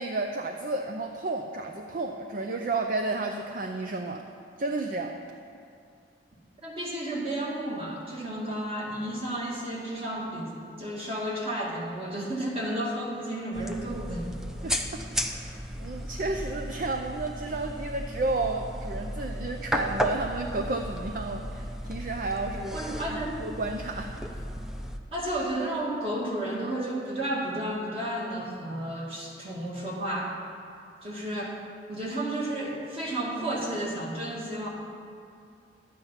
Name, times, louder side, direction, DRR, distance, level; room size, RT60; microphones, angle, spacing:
voice 1, 0.0-4.2 4.6-5.2 14.6-24.1, right 3 dB, 50° right, 4 dB, 0.6 m, -32 dB
voice 2, 6.6-10.5 10.8-14.3 22.7-23.4 25.1-30.3 31.0-31.6 31.9-34.7, right 1 dB, 35° right, -4 dB, 2.2 m, -32 dB
sound 1, 13.5-25.0, equal, 5° right, 0.5 m, -35 dB
12.0 x 8.5 x 5.7 m, 2.4 s
head